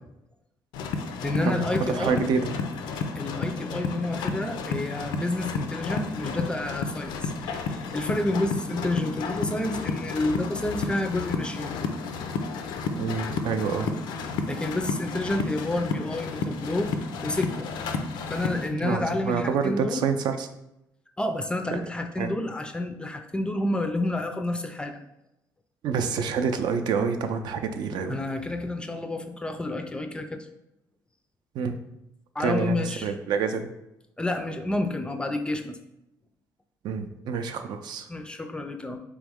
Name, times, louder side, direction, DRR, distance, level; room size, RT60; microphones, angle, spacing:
sound 1, 0.7-18.7, left 4 dB, 85° left, 0.4 m, -32 dB
voice 1, 1.2-2.2 3.2-11.8 14.5-16.9 17.2-17.7 18.3-20.1 21.2-25.0 28.1-30.5 32.4-33.1 34.2-35.8 38.1-39.0, left 1 dB, 10° left, 6 dB, 0.3 m, -29 dB
voice 2, 1.9-2.5 12.9-13.9 18.8-20.5 21.7-21.8 22.2-22.3 25.8-28.2 31.5-31.7 32.4-33.7 36.8-38.1, right 6 dB, 70° right, 7 dB, 0.4 m, -27 dB
3.6 x 3.0 x 3.5 m, 0.88 s
cardioid pair, 115°, 8 cm